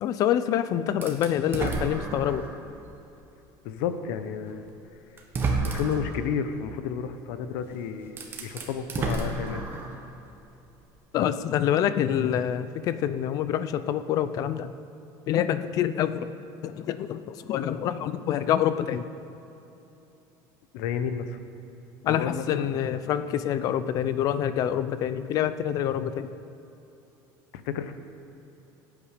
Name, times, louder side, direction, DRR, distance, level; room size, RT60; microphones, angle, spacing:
voice 1, 0.0-2.4 11.1-14.7 15.3-16.3 16.6-19.0 22.1-26.3, left 10 dB, 40° left, 12 dB, 0.5 m, -26 dB
sound 1, 1.0-2.6 3.2-3.3 4.5-4.6 5.2-6.1 7.6-7.7 8.1-10.0, right 3 dB, 25° right, 1.3 m, -30 dB
voice 2, 3.6-4.7 5.6-9.6 20.7-21.4 22.0-22.7 27.5-27.9, left 7 dB, 80° left, 10 dB, 0.9 m, -31 dB
18.0 x 8.6 x 5.0 m, 2.9 s
cardioid pair, 170°, 9 cm